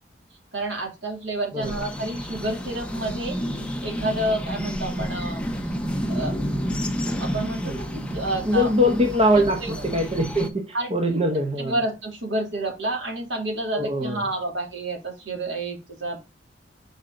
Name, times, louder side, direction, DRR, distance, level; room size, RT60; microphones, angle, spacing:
voice 1, 0.5-3.4 3.8-5.4 6.1-6.3 7.2-8.7 9.3-9.7 10.7-16.2, right 1 dB, 75° right, 1 dB, 3.0 m, -29 dB
sound 1, 1.6-10.5, equal, 5° left, 1.0 m, -30 dB
voice 2, 7.6-8.0 8.4-11.8 13.7-14.3, equal, 30° right, 3 dB, 1.2 m, -23 dB
6.2 x 5.0 x 3.9 m, 0.26 s
head